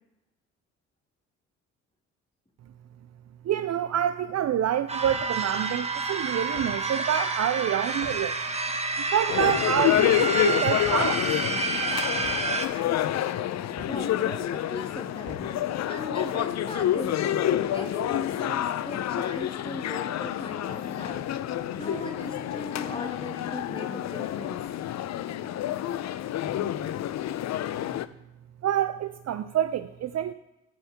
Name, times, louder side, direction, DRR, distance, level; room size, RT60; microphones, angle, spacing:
voice 1, 3.4-8.4 9.0-11.4 28.6-30.3, right 10 dB, 45° right, 11 dB, 0.5 m, -27 dB
sound 1, 4.9-12.7, right 3 dB, 15° right, 1.2 m, -29 dB
sound 2, 5.0-15.7, left 2 dB, 70° left, 2.5 m, -47 dB
sound 3, 9.3-28.1, left 11 dB, 45° left, 0.6 m, -28 dB
voice 2, 13.9-24.7, left 1 dB, 15° left, 1 dB, 2.5 m, -39 dB
14.0 x 5.5 x 2.9 m, 0.94 s
hypercardioid pair, 45°, 37 cm